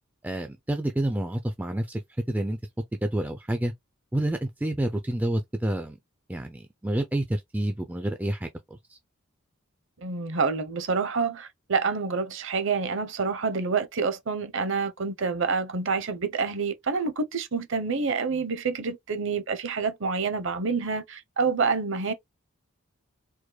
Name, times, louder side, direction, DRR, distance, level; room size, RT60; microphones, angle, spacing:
voice 1, 0.2-2.0 2.3-2.6 3.0-3.7 4.1-6.0 6.3-8.5, right 1 dB, 5° right, 0.3 m, -28 dB
voice 2, 10.0-22.1, right 4 dB, 55° right, 0.7 m, -27 dB
4.8 x 2.1 x 2.2 m
head